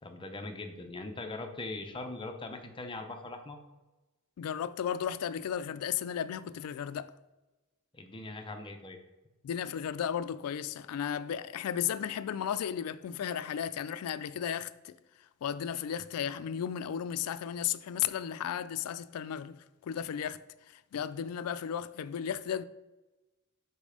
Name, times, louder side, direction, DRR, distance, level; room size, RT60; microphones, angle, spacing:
voice 1, 0.0-3.6 7.9-9.0, left 2 dB, 25° left, 0.6 m, -41 dB
voice 2, 4.4-7.1 9.4-15.0 15.4-22.6, left 9 dB, 80° left, 0.3 m, -34 dB
5.2 x 4.2 x 5.0 m
head